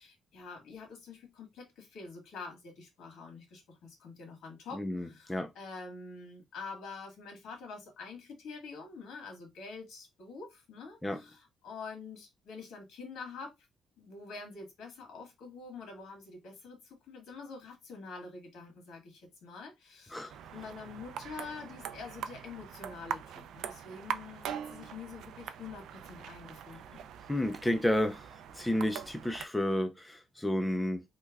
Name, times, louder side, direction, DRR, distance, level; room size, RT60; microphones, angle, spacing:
voice 1, 0.0-13.5 14.0-27.0, left 4 dB, 80° left, 1.6 m, -46 dB
voice 2, 4.7-5.5 11.0-11.2 20.1-20.3 27.3-28.3 28.6-31.0, left 1 dB, 5° left, 0.4 m, -31 dB
sound 1, 20.3-29.4, right 9 dB, 75° right, 0.3 m, -42 dB
3.2 x 2.1 x 3.4 m
cardioid pair, 165°, 0 cm